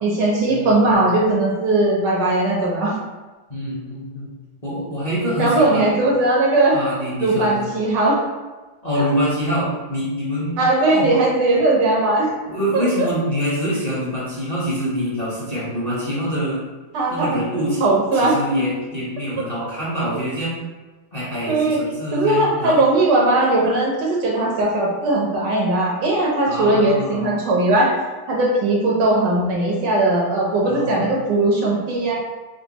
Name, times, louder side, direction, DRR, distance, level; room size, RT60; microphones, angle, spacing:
voice 1, 0.0-2.9 5.4-6.8 7.2-8.2 9.0-9.1 10.6-12.3 12.7-12.8 16.9-17.4 17.8-18.3 21.5-21.8 22.1-27.9 28.3-32.1, right 2 dB, 90° right, -3 dB, 1.6 m, -18 dB
voice 2, 3.5-4.3 4.6-5.9 6.7-7.7 8.8-10.6 10.9-11.1 12.5-16.6 17.1-17.8 18.1-20.6 21.1-22.8 26.5-27.3 30.6-31.1, equal, 30° left, -9 dB, 0.8 m, -25 dB
4.0 x 2.0 x 3.9 m, 1.2 s
omnidirectional pair, 1.8 m